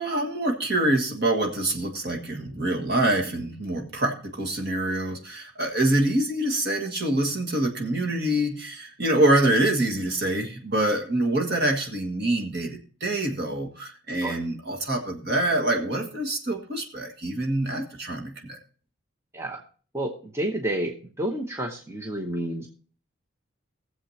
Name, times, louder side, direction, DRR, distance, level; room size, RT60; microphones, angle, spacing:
voice 1, 0.0-18.6, right 1 dB, 50° right, 3 dB, 1.7 m, -25 dB
voice 2, 19.9-22.7, right 1 dB, 15° right, 2 dB, 0.9 m, -30 dB
20.5 x 7.4 x 2.8 m, 0.41 s
head